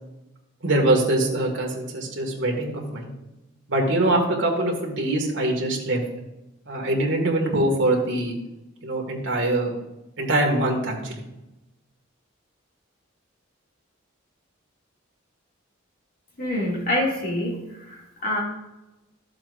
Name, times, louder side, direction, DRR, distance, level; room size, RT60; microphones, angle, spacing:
voice 1, 0.6-3.1 3.7-6.0 6.7-8.4 8.8-9.7 10.2-11.1, right 1 dB, 65° right, 0 dB, 2.1 m, -23 dB
voice 2, 16.4-17.6 17.8-18.4, left 1 dB, 45° left, -3 dB, 2.5 m, -26 dB
12.5 x 7.5 x 2.6 m, 0.98 s
head